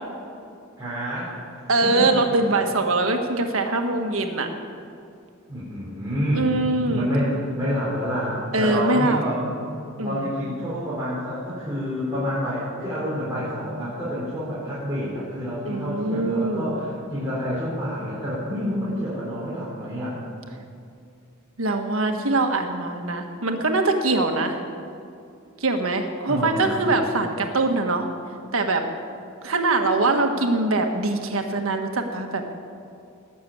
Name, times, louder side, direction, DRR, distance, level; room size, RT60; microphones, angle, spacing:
voice 1, 0.8-2.2 5.5-6.5 6.9-9.4 10.0-20.2 26.3-26.7, equal, 15° right, -10 dB, 4.3 m, -28 dB
voice 2, 1.7-4.5 6.3-7.1 8.5-9.2 10.0-10.3 15.7-16.8 21.6-24.6 25.6-28.1 28.5-28.9 29.4-32.5, right 2 dB, 85° right, 4 dB, 1.5 m, -23 dB
18.5 x 6.9 x 8.6 m, 2.6 s
head